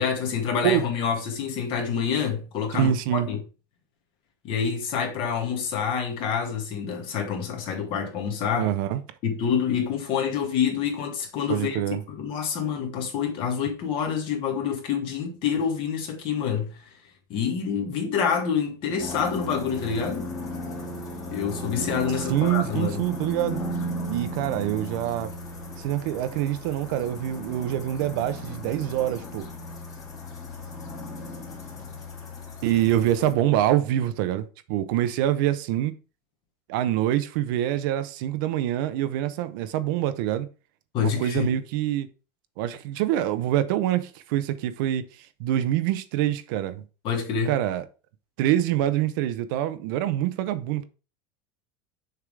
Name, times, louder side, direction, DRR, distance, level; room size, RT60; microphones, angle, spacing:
voice 1, 0.0-3.4 4.4-8.7 9.2-11.8 12.1-16.8 17.3-20.3 21.3-23.0 40.9-41.6 47.0-47.5, left 7 dB, 45° left, 1.9 m, -27 dB
voice 2, 2.7-3.3 8.6-9.0 11.5-12.0 22.3-23.6 24.1-25.3 25.8-29.5 32.6-35.9 36.7-40.5 41.0-42.1 42.6-45.0 45.4-46.8 47.5-47.8 48.4-50.8, right 12 dB, 65° right, 0.7 m, -25 dB
sound 1, 19.0-33.3, equal, 30° left, 2.1 m, -36 dB
6.6 x 3.7 x 4.7 m
supercardioid pair, 125°, 12 cm